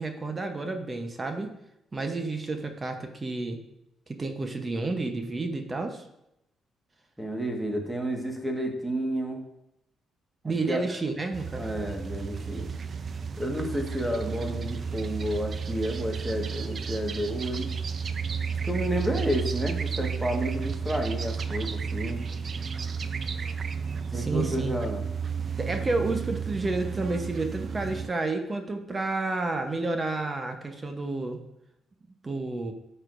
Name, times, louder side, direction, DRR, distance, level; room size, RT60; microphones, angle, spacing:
voice 1, 0.0-1.5 1.9-3.6 4.1-6.0 10.4-11.7 24.1-24.7 25.6-31.4 32.2-32.7, right 3 dB, 30° right, 5 dB, 0.9 m, -30 dB
voice 2, 7.2-9.4 10.4-10.8 11.5-12.7 13.4-17.7 18.6-22.3 24.1-25.0, equal, 10° right, 2 dB, 1.6 m, -31 dB
sound 1, 11.3-28.1, right 6 dB, 45° right, 0.5 m, -32 dB
10.5 x 6.6 x 2.6 m, 0.84 s
cardioid pair, 90°, 0 cm